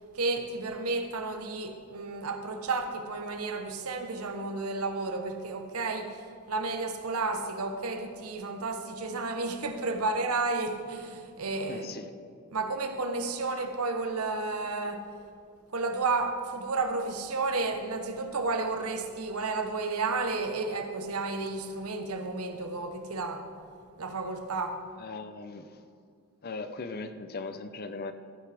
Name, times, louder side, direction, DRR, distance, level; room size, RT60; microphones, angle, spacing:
voice 1, 0.1-11.9 12.5-15.1 15.7-23.5 24.0-24.8, right 3 dB, 80° right, 1.0 m, -32 dB
voice 2, 11.7-12.1 25.0-25.8 26.4-28.1, left 3 dB, 45° left, 0.6 m, -38 dB
14.5 x 9.9 x 3.4 m
head